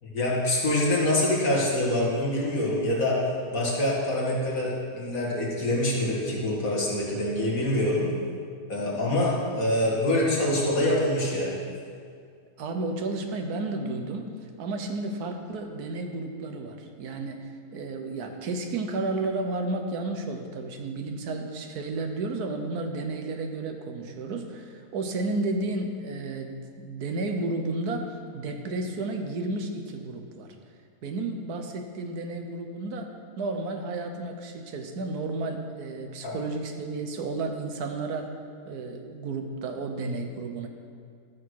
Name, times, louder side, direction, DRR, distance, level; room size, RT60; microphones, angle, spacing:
voice 1, 0.0-3.2 3.5-8.1 8.7-11.6 36.2-36.3, left 1 dB, 60° left, -4 dB, 2.4 m, -25 dB
voice 2, 12.6-30.5 31.0-38.4 38.6-40.7, right 2 dB, 75° right, 4 dB, 1.5 m, -32 dB
13.5 x 6.4 x 4.7 m, 2.2 s
omnidirectional pair, 1.6 m